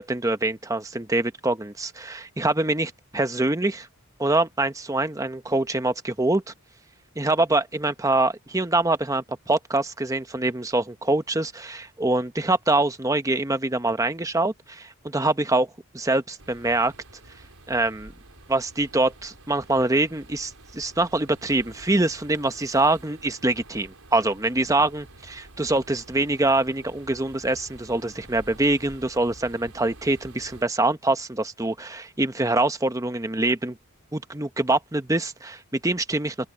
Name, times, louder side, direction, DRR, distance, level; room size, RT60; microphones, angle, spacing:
voice 1, 0.0-3.9 4.2-6.5 7.2-15.7 15.9-16.9 17.7-18.1 18.5-33.8 34.1-36.5, right 2 dB, 15° right, 0.9 m, -24 dB
sound 1, 16.4-30.7, right 2 dB, 80° right, 4.4 m, -49 dB
open air
head